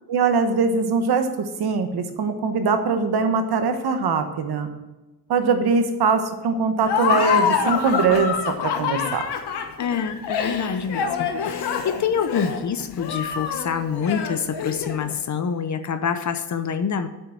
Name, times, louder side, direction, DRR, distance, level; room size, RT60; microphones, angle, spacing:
voice 1, 0.1-4.7 5.3-8.3 8.6-9.2, right 4 dB, 70° right, 7 dB, 1.3 m, -22 dB
Laughter, 6.8-15.1, left 7 dB, 80° left, 1.3 m, -26 dB
voice 2, 9.8-17.1, left 7 dB, 45° left, 10 dB, 0.8 m, -26 dB
7.9 x 6.4 x 7.5 m, 1.1 s
wide cardioid pair, 140°, 40 cm